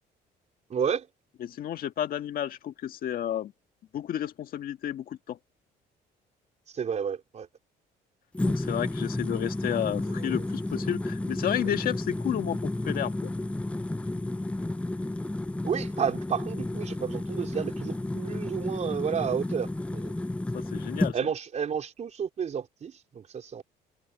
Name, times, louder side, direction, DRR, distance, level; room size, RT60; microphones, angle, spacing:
voice 1, 0.7-1.1 6.7-7.5 10.1-10.4 15.6-20.1 21.1-23.6, right 7 dB, 45° right, 4.1 m, -31 dB
voice 2, 1.4-3.5 3.9-5.4 8.4-13.3 20.5-21.1, left 10 dB, 60° left, 1.7 m, -32 dB
sound 1, 8.3-21.2, left 2 dB, 5° left, 0.5 m, -32 dB
cardioid pair, 110°, 17 cm